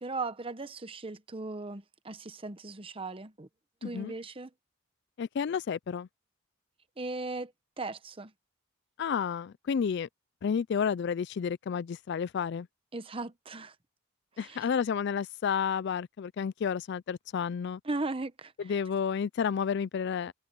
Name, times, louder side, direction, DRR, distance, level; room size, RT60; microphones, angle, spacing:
voice 1, 0.0-3.5 3.8-4.5 7.0-7.5 7.8-8.3 12.9-13.7 14.4-14.7 17.8-18.5, right 3 dB, 25° right, 0.9 m, -37 dB
voice 2, 3.8-4.1 5.2-6.1 9.0-10.1 10.4-12.7 14.4-17.8 18.6-20.3, left 7 dB, 55° left, 0.3 m, -31 dB
head